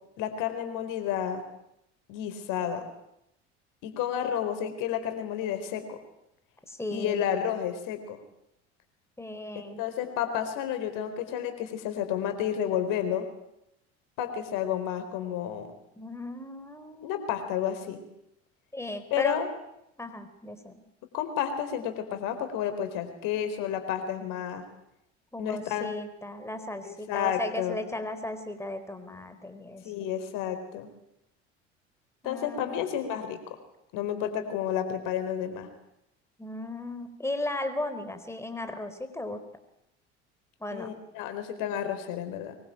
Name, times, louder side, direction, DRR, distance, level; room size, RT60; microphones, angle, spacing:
voice 1, 0.2-1.4 2.1-2.9 3.8-6.0 6.9-8.2 9.5-13.3 14.2-15.7 17.0-18.0 19.1-19.5 21.1-24.7 25.4-25.9 26.8-27.8 29.8-30.9 32.2-33.6 33.9-35.7 40.7-42.5, left 9 dB, 60° left, 8 dB, 4.3 m, -31 dB
voice 2, 6.7-7.2 9.2-9.8 16.0-17.2 18.7-19.4 20.0-20.7 25.3-29.8 32.2-32.7 36.4-39.4 40.6-40.9, left 1 dB, 5° left, 8 dB, 4.2 m, -36 dB
24.0 x 23.0 x 9.0 m, 0.84 s
hypercardioid pair, 65°, 35 cm